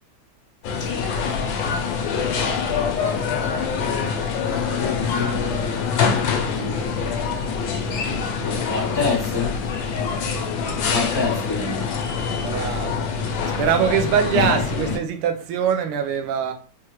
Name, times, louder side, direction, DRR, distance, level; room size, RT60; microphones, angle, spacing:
sound 1, 0.6-15.0, left 5 dB, 75° left, 1.2 m, -25 dB
voice 1, 4.4-6.8 8.4-9.6 10.9-11.9, left 5 dB, 15° left, 1.0 m, -27 dB
voice 2, 12.4-13.1 13.6-16.5, right 7 dB, 80° right, 1.5 m, -23 dB
4.4 x 2.4 x 2.9 m
omnidirectional pair, 2.4 m